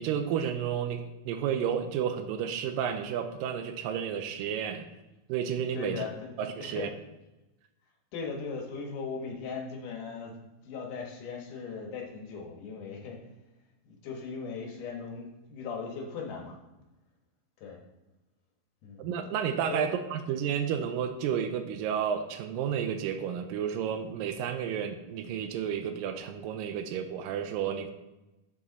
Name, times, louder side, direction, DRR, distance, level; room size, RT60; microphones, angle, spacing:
voice 1, 0.0-4.9 5.3-6.0 6.4-6.9 19.0-27.9, right 8 dB, 85° right, 8 dB, 2.2 m, -31 dB
voice 2, 5.7-6.3 6.6-6.9 8.1-13.2 13.8-16.6 17.6-17.8 18.8-19.1 19.7-19.9, left 5 dB, 70° left, 1 dB, 2.6 m, -38 dB
7.5 x 7.0 x 3.9 m, 1.0 s
omnidirectional pair, 4.1 m